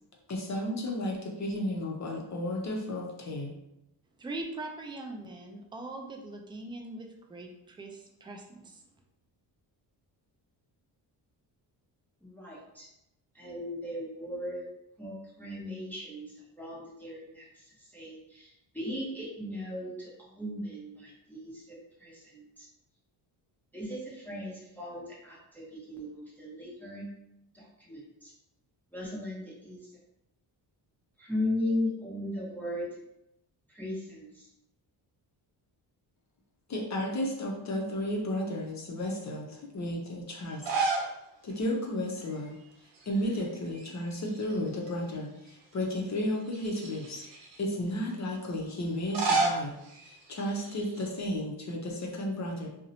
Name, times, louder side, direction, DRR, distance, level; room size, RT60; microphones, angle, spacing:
voice 1, 0.3-3.6 36.7-40.7 41.4-42.6 43.1-47.2 47.6-49.7 50.0-52.7, left 1 dB, 40° left, -1 dB, 0.6 m, -33 dB
voice 2, 4.2-8.8, right 2 dB, 10° right, 2 dB, 0.3 m, -41 dB
voice 3, 12.2-12.9 13.3-14.6 15.0-22.7 23.7-27.1 27.5-28.3 28.9-29.8 31.2-33.0 33.7-34.5, left 1 dB, 5° left, -6 dB, 0.8 m, -37 dB
sound 1, 40.5-41.2 41.5-41.6 42.9-43.4 43.7-44.9 45.5-45.6 46.5-47.6 48.9-51.1, right 3 dB, 80° right, 0.7 m, -32 dB
2.6 x 2.1 x 2.7 m, 0.85 s
cardioid pair, 80°, 43 cm